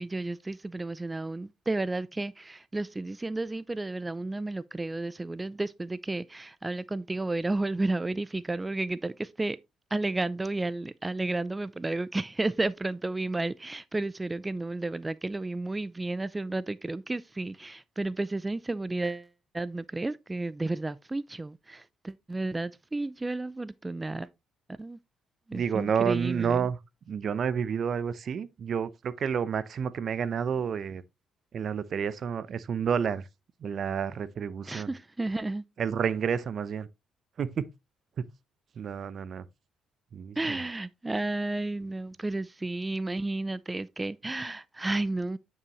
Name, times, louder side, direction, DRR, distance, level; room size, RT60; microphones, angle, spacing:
voice 1, 0.0-9.6 9.9-19.3 19.5-24.3 24.8-25.0 25.5-26.6 34.6-35.6 40.4-45.4, right 2 dB, 20° right, 0.4 m, -32 dB
voice 2, 25.5-26.8 27.1-31.0 31.5-33.2 33.6-34.9 35.8-36.9 37.4-37.7 38.2-38.3 38.8-39.5 40.1-40.6, right 7 dB, 55° right, 0.7 m, -30 dB
9.4 x 5.6 x 3.0 m
supercardioid pair, 70°, 0 cm